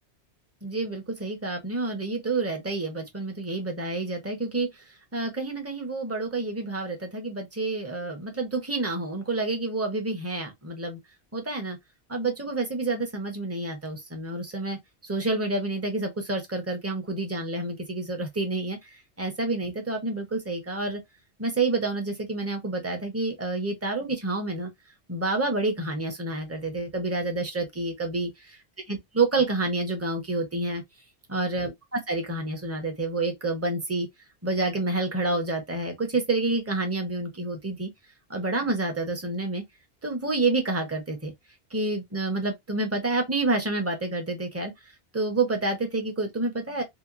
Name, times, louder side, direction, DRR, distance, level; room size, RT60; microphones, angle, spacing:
voice 1, 0.6-4.8 5.1-11.0 11.3-11.8 12.1-21.0 21.4-24.7 25.1-28.3 28.9-30.8 31.3-34.1 34.4-37.9 38.3-39.6 40.0-41.3 41.7-44.7 45.1-46.8, right 2 dB, 15° right, 0.6 m, -28 dB
2.8 x 2.1 x 2.4 m
omnidirectional pair, 1.1 m